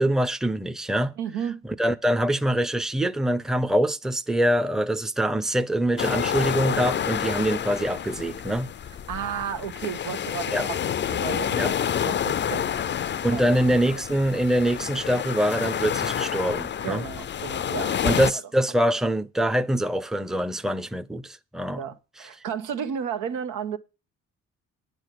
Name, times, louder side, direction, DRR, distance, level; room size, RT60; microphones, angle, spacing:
voice 1, 0.0-1.2 1.8-8.7 10.5-10.7 11.5-11.7 13.2-17.0 18.0-21.8, right 1 dB, ahead, 0.6 m, -24 dB
voice 2, 1.2-1.6 9.1-12.7 13.3-13.8 16.8-18.1 18.3-18.4 18.7-18.8 21.7-23.8, right 8 dB, 90° right, 1.2 m, -33 dB
sound 1, 6.0-18.3, left 9 dB, 40° left, 0.5 m, -29 dB
9.7 x 5.0 x 7.7 m
cardioid pair, 90°, 30 cm